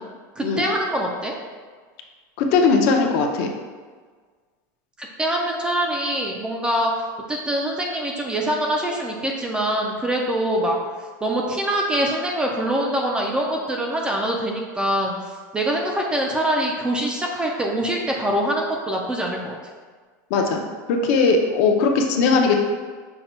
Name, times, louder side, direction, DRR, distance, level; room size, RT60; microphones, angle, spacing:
voice 1, 0.4-1.3 5.0-6.9 7.3-10.7 11.2-15.1 15.5-19.6, right 1 dB, 10° right, 0 dB, 0.3 m, -24 dB
voice 2, 2.4-3.5 20.3-20.6 20.9-22.6, left 4 dB, 50° left, 3 dB, 0.6 m, -19 dB
5.6 x 2.2 x 4.2 m, 1.5 s
supercardioid pair, 165°, 10 cm